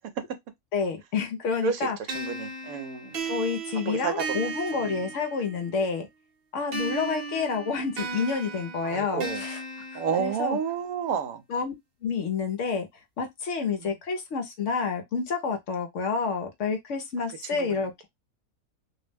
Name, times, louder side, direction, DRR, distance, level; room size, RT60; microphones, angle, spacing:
voice 1, 0.7-2.0 3.2-6.1 6.5-9.6 9.9-10.6 11.5-11.7 12.0-12.9 13.2-18.1, left 5 dB, 65° left, 0.8 m, -29 dB
sound 1, 2.1-5.7 6.7-10.7, right 3 dB, 50° right, 0.8 m, -36 dB
voice 2, 2.1-3.2 3.9-4.5 4.8-5.1 8.8-9.4 9.9-11.4 17.5-17.8, right 6 dB, 75° right, 1.0 m, -30 dB
2.6 x 2.1 x 3.2 m
omnidirectional pair, 1.6 m